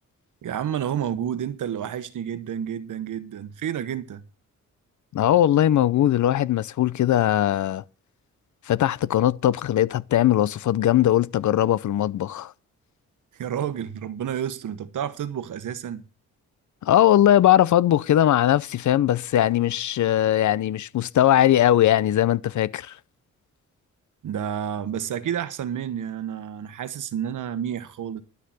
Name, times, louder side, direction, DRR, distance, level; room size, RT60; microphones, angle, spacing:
voice 1, 0.4-4.2 13.3-16.0 24.2-28.2, right 9 dB, 70° right, 1.3 m, -30 dB
voice 2, 5.1-7.8 8.7-12.5 16.8-23.0, left 12 dB, 65° left, 0.6 m, -20 dB
12.0 x 6.6 x 7.6 m
cardioid pair, 90°, 32 cm